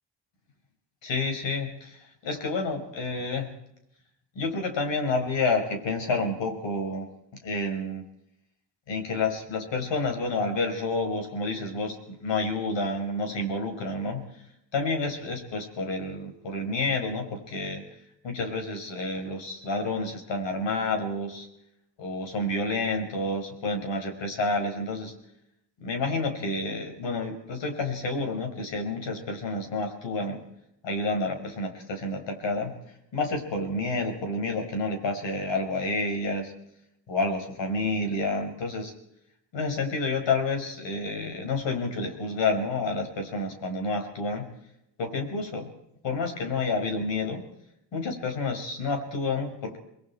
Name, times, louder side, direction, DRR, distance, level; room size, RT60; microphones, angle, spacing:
voice 1, 1.0-3.5 4.3-7.1 7.4-8.0 8.9-14.2 14.7-17.8 18.2-21.5 22.0-25.1 25.8-30.4 30.8-32.7 33.1-36.5 37.1-38.9 39.5-44.5 45.0-45.7 46.0-47.4 47.9-49.8, left 3 dB, 75° left, 4 dB, 5.8 m, -29 dB
28.5 x 21.5 x 4.5 m, 0.80 s
cardioid pair, 95°, 44 cm